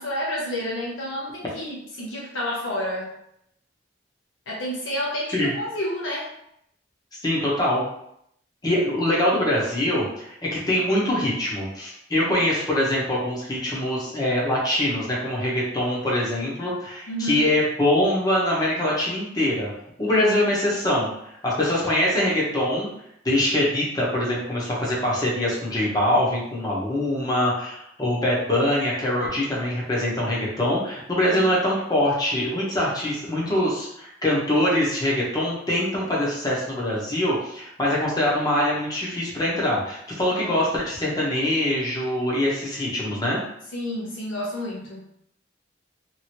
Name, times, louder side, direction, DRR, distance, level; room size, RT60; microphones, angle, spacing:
voice 1, 0.0-3.1 4.5-6.3 17.1-17.5 20.1-20.2 31.2-31.4 40.3-40.6 43.7-45.0, equal, 90° left, -5 dB, 0.8 m, -30 dB
voice 2, 7.2-7.8 8.6-19.7 20.0-22.9 23.2-43.4, left 1 dB, 20° left, -5 dB, 0.9 m, -23 dB
2.9 x 2.6 x 2.8 m, 0.75 s
head